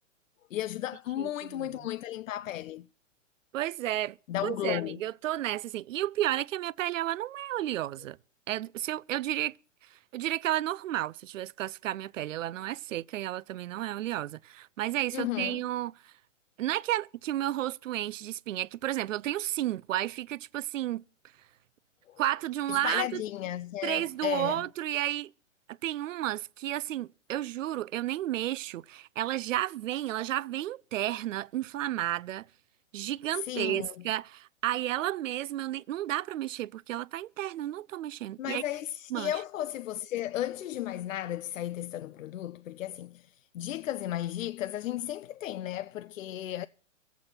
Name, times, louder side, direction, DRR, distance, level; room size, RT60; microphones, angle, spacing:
voice 1, 0.5-2.9 4.3-5.0 15.1-15.6 22.1-22.2 22.7-24.7 33.5-33.9 38.4-43.3 43.5-46.7, left 13 dB, 90° left, 0.5 m, -34 dB
voice 2, 1.2-1.8 3.5-4.2 4.4-8.2 8.5-9.6 9.9-16.1 16.6-21.0 22.2-23.2 23.8-25.3 25.7-32.5 32.9-38.6 39.1-39.4, right 14 dB, 80° right, 0.5 m, -32 dB
24.5 x 8.3 x 4.3 m
hypercardioid pair, 150°, 38 cm